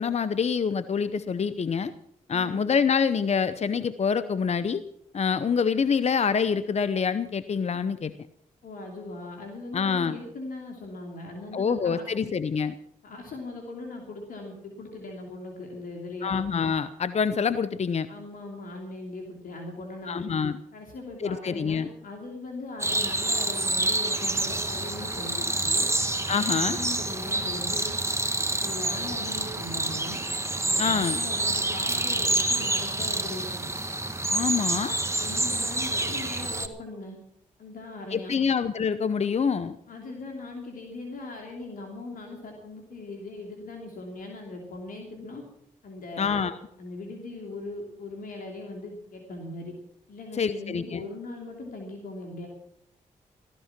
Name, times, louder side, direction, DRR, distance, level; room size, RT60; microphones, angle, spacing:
voice 1, 0.0-1.9 2.3-4.8 5.1-8.1 9.7-10.2 11.5-12.7 16.2-18.1 20.1-20.6 21.2-21.9 26.3-26.8 30.8-31.2 34.3-35.0 38.1-39.8 46.2-46.6 50.4-51.0, left 6 dB, 50° left, 14 dB, 0.8 m, -26 dB
voice 2, 2.3-2.7 8.6-12.3 13.0-16.4 18.1-20.2 20.7-25.9 26.3-27.9 28.6-30.2 30.7-33.7 35.2-37.2 37.6-38.4 39.9-45.4 45.8-46.5 46.8-49.7 50.1-52.5, left 2 dB, 70° left, 1 dB, 3.0 m, -39 dB
sound 1, 22.8-36.7, right 2 dB, 20° right, 1.7 m, -28 dB
15.5 x 13.5 x 6.0 m, 0.73 s
supercardioid pair, 50°, 15 cm